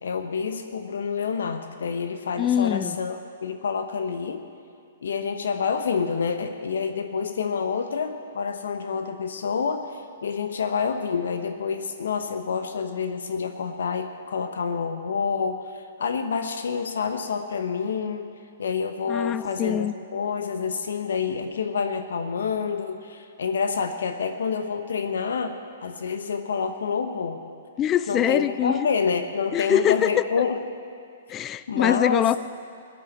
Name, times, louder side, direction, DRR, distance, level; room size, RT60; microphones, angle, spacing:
voice 1, 0.0-4.4 5.0-18.3 18.6-27.4 28.1-30.6 31.7-32.3, left 5 dB, 70° left, 7 dB, 1.0 m, -28 dB
voice 2, 2.4-3.0 19.1-19.9 27.8-28.8 29.5-30.2 31.3-32.4, left 10 dB, 25° left, 16 dB, 0.5 m, -23 dB
17.0 x 10.0 x 7.1 m, 2.3 s
figure-of-eight pair, 120°, 0 cm